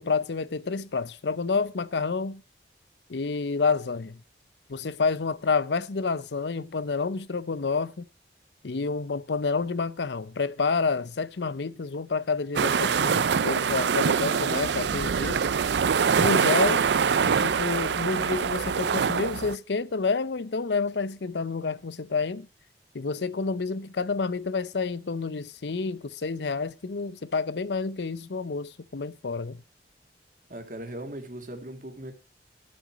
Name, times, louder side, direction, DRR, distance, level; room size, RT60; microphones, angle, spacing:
voice 1, 0.0-2.4 3.1-4.2 4.7-8.1 8.6-15.4 16.1-16.9 17.4-22.5 22.9-29.6, left 4 dB, 80° left, 0.6 m, -29 dB
sound 1, 12.6-19.6, right 6 dB, 80° right, 0.5 m, -24 dB
voice 2, 30.5-32.1, right 1 dB, 50° right, 2.3 m, -38 dB
11.5 x 7.9 x 6.0 m
head